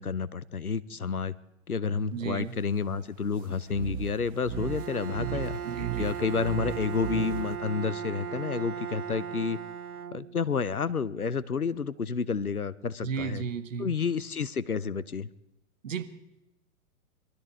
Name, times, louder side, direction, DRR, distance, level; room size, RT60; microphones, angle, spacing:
voice 1, 0.0-1.3 1.7-5.6 6.0-9.6 10.1-13.4 13.8-15.3, left 5 dB, 85° left, 0.8 m, -30 dB
voice 2, 2.1-2.6 5.2-6.1 13.0-13.9 15.8-16.0, right 6 dB, 60° right, 1.5 m, -34 dB
sound 1, 3.7-7.6, right 11 dB, 20° right, 1.0 m, -37 dB
Bowed string instrument, 4.5-10.7, right 7 dB, 85° right, 0.7 m, -37 dB
22.0 x 13.0 x 4.6 m
figure-of-eight pair, 110°, 43 cm